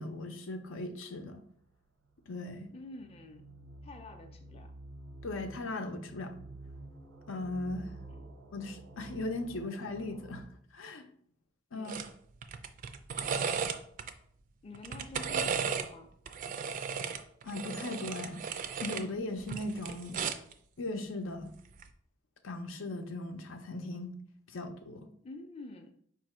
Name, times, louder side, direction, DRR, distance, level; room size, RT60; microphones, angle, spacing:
voice 1, 0.0-1.4 2.3-2.7 5.2-6.4 7.3-7.9 8.5-10.5 10.7-11.1 11.7-11.9 17.4-18.4 18.8-20.2 20.8-21.5 22.4-24.2 24.5-25.1, left 2 dB, 90° left, 6 dB, 0.6 m, -38 dB
sound 1, 1.6-10.4, right 2 dB, 80° right, 0.7 m, -50 dB
voice 2, 2.7-3.5 3.8-4.7 8.1-8.2 11.7-12.1 14.6-16.1 25.2-25.9, left 2 dB, 30° left, 4 dB, 0.4 m, -48 dB
sound 2, 11.9-12.1 12.4-14.1 14.7-15.9 16.3-19.1 19.4-20.5 21.7-21.9, right 6 dB, 40° right, 0.3 m, -35 dB
4.7 x 2.6 x 4.2 m, 0.63 s
head